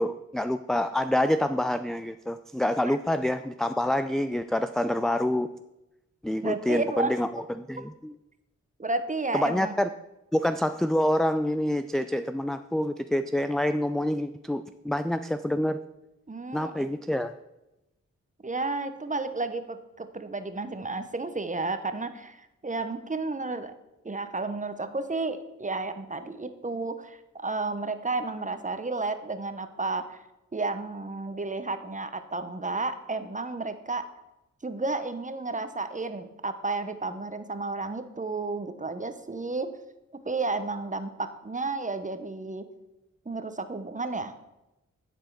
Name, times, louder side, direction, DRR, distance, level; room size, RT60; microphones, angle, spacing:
voice 1, 0.0-5.5 6.2-8.1 9.3-9.9 10.3-15.8 16.5-17.3, left 1 dB, ahead, 10 dB, 0.3 m, -27 dB
voice 2, 6.4-7.2 8.8-9.7 16.3-16.8 18.4-23.8 24.0-30.2 30.5-34.1 34.6-39.7 40.2-42.7 43.3-44.3, right 3 dB, 25° right, 10 dB, 0.9 m, -32 dB
10.5 x 4.4 x 4.7 m, 0.92 s
cardioid pair, 45°, 30 cm